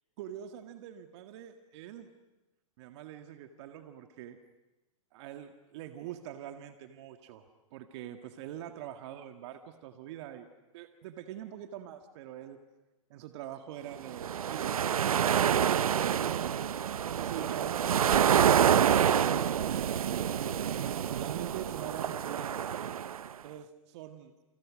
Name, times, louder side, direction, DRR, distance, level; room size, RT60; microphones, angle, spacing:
voice 1, 0.2-2.1 2.8-4.4 5.1-10.5 10.7-12.6 13.1-15.6 16.3-16.5 16.9-20.3 20.6-22.6 23.4-24.3, right 11 dB, 50° right, 7 dB, 1.9 m, -44 dB
sound 1, 14.1-23.3, right 9 dB, 80° right, 0.9 m, -27 dB
29.5 x 29.0 x 6.4 m, 1.1 s
hypercardioid pair, 120°, 18 cm